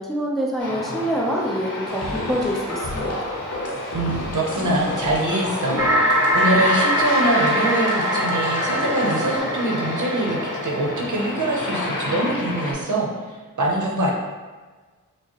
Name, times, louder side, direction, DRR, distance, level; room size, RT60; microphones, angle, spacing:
voice 1, 0.0-3.3, equal, ahead, -4 dB, 0.6 m, -26 dB
Aircraft, 0.6-12.7, left 2 dB, 90° left, 0.7 m, -30 dB
sound 1, 1.9-9.4, left 1 dB, 50° left, 0.7 m, -32 dB
voice 2, 3.9-14.1, right 1 dB, 70° right, -2 dB, 0.7 m, -24 dB
sound 2, 5.8-11.5, equal, 45° right, 0.9 m, -23 dB
4.7 x 2.0 x 2.9 m, 1.4 s
wide cardioid pair, 60°, 31 cm